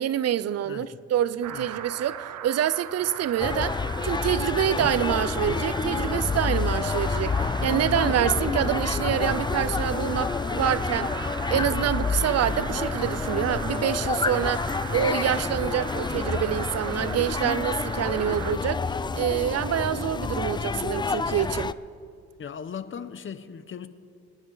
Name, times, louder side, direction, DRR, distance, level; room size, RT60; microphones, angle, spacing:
voice 1, 0.0-11.1 11.5-18.8 19.1-21.7, right 10 dB, 55° right, 0.6 m, -26 dB
voice 2, 0.6-1.0 1.5-1.7 22.4-23.9, left 7 dB, 40° left, 0.9 m, -38 dB
sound 1, 1.4-18.5, right 10 dB, 85° right, 0.8 m, -38 dB
sound 2, 3.4-21.7, left 4 dB, 15° left, 0.3 m, -28 dB
26.0 x 10.5 x 4.0 m
cardioid pair, 90°, 30 cm